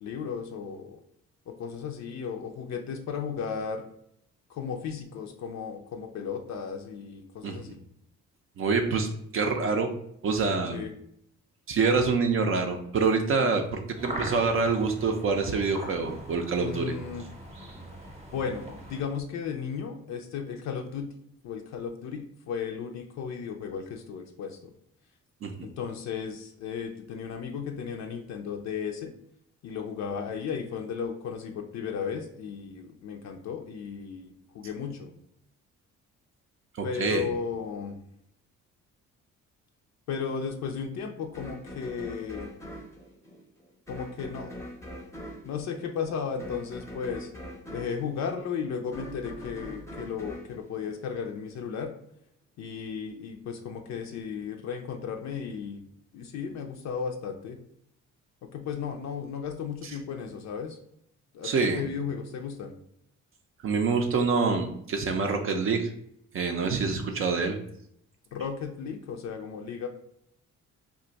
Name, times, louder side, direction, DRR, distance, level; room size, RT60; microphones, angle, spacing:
voice 1, 0.0-1.0 1.5-3.8 4.5-7.8 10.7-10.9 16.6-17.3 18.3-21.2 21.4-24.7 25.6-29.1 29.6-35.1 36.8-38.0 40.1-42.5 43.9-44.6 45.4-47.3 47.7-51.9 52.6-55.8 56.1-57.6 58.5-60.8 61.3-62.7 68.3-69.9, left 6 dB, 65° left, 4 dB, 0.5 m, -35 dB
voice 2, 8.6-9.9 10.2-10.8 11.7-16.9 25.4-25.5 36.7-37.3 61.4-61.8 63.6-65.9 66.3-67.6, right 4 dB, 45° right, 4 dB, 0.4 m, -26 dB
sound 1, 14.0-19.0, right 1 dB, 20° right, 0.8 m, -40 dB
sound 2, 41.3-51.6, equal, 10° left, 0.6 m, -43 dB
2.5 x 2.2 x 3.9 m, 0.72 s
cardioid pair, 90°, 30 cm